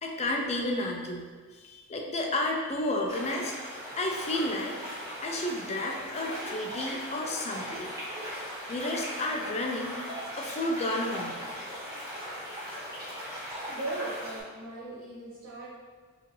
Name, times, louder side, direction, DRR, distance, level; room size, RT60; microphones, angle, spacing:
voice 1, 0.0-3.5 4.0-4.8 5.2-7.9 8.7-11.5, left 1 dB, 30° left, 1 dB, 0.5 m, -32 dB
sound 1, 3.1-14.4, equal, 15° right, 1.4 m, -39 dB
voice 2, 13.7-15.7, right 2 dB, 75° right, -9 dB, 0.9 m, -38 dB
4.6 x 2.7 x 3.2 m, 1.5 s
head